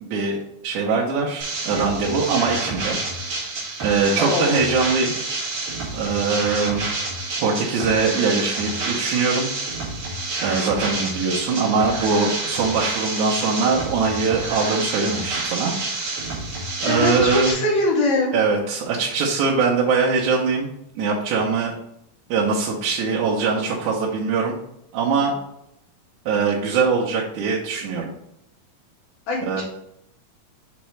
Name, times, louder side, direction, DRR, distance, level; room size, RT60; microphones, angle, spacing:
voice 1, 0.0-3.0 3.8-5.1 5.9-6.9 7.4-9.5 10.4-16.3 16.8-17.6 18.3-20.7 21.0-21.8 22.3-24.6 24.9-25.4 26.3-28.1 29.4-29.6, right 4 dB, 70° right, -5 dB, 2.1 m, -22 dB
sound 1, 1.4-17.5, right 3 dB, 45° right, 1.9 m, -28 dB
voice 2, 4.2-4.6 16.8-18.3 29.3-29.6, left 2 dB, 85° left, -5 dB, 4.0 m, -22 dB
7.1 x 4.6 x 3.2 m, 0.78 s
omnidirectional pair, 4.0 m